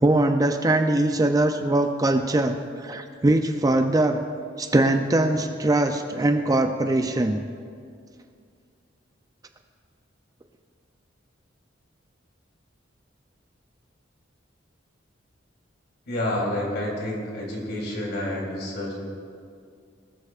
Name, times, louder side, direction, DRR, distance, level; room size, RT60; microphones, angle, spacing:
voice 1, 0.0-2.5 2.8-4.2 4.6-7.4, right 2 dB, 20° right, 6 dB, 0.4 m, -21 dB
voice 2, 16.1-18.9, left 1 dB, 60° left, -2 dB, 3.3 m, -29 dB
19.0 x 13.0 x 2.5 m, 2.3 s
head